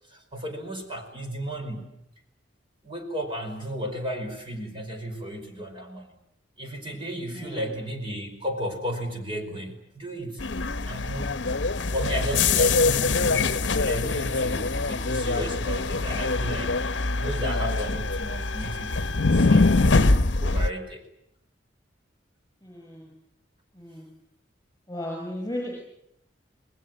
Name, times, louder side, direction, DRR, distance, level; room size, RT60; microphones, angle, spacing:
voice 1, 0.1-1.9 2.8-6.1 6.6-10.4 10.9-11.3 11.9-16.8 17.2-19.9 20.4-21.0, equal, 25° right, 3 dB, 5.0 m, -34 dB
voice 2, 7.3-7.8 22.6-23.1 23.7-24.2 24.9-25.7, left 1 dB, 15° left, 1 dB, 6.6 m, -35 dB
sound 1, 10.4-20.7, left 3 dB, 70° left, 1.0 m, -23 dB
28.0 x 20.5 x 9.1 m, 0.78 s
head